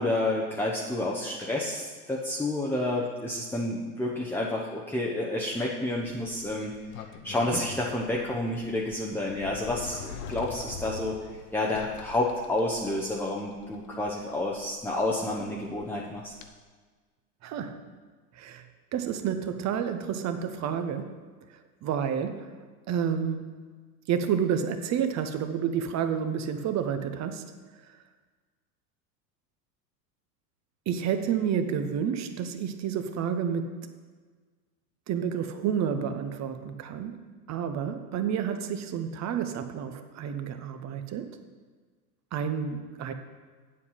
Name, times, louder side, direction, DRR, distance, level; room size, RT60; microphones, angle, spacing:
voice 1, 0.0-6.7 7.2-11.2 11.5-16.3, left 1 dB, 5° left, -3 dB, 0.8 m, -29 dB
Sliding door, 5.9-16.5, left 6 dB, 70° left, 1.0 m, -45 dB
voice 2, 17.4-17.8 18.3-18.6 18.9-21.2 21.5-22.5 22.9-23.6 24.1-27.5 30.9-33.9 35.1-41.3 42.3-43.1, right 8 dB, 35° right, 8 dB, 0.8 m, -30 dB
8.1 x 7.6 x 5.6 m, 1.5 s
hypercardioid pair, 105°, 47 cm